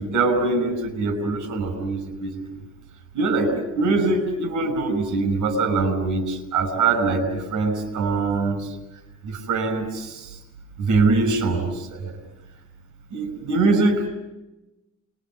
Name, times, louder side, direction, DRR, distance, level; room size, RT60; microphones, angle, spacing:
voice 1, 0.0-2.4 3.1-8.7 9.2-10.3 10.8-12.2 13.1-14.1, right 3 dB, 80° right, 10 dB, 5.8 m, -23 dB
27.0 x 22.5 x 7.6 m, 1.0 s
cardioid pair, 90°, 30 cm